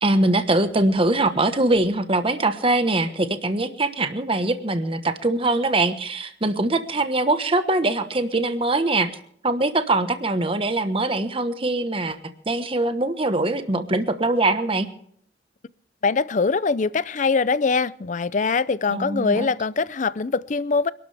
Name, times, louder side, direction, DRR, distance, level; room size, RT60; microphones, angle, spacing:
voice 1, 0.0-9.1 9.4-12.2 12.5-14.9 18.9-19.5, right 2 dB, 30° right, 1.3 m, -22 dB
voice 2, 16.0-20.9, left 4 dB, 45° left, 0.5 m, -23 dB
28.0 x 12.5 x 3.5 m
head